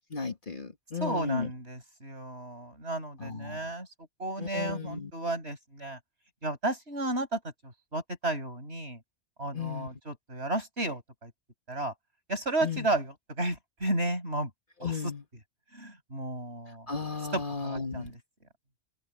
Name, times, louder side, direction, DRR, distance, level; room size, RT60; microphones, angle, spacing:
voice 1, 0.0-1.5 3.2-3.7 4.4-5.1 9.5-9.9 12.6-12.9 14.8-15.2 16.9-18.1, left 5 dB, 50° left, 2.1 m, -35 dB
voice 2, 1.0-3.9 4.2-6.0 6.4-9.0 9.4-11.3 11.7-11.9 12.3-14.5 14.8-15.0 15.7-16.9 17.3-18.1, right 2 dB, 70° right, 8.1 m, -33 dB
omnidirectional pair, 1.1 m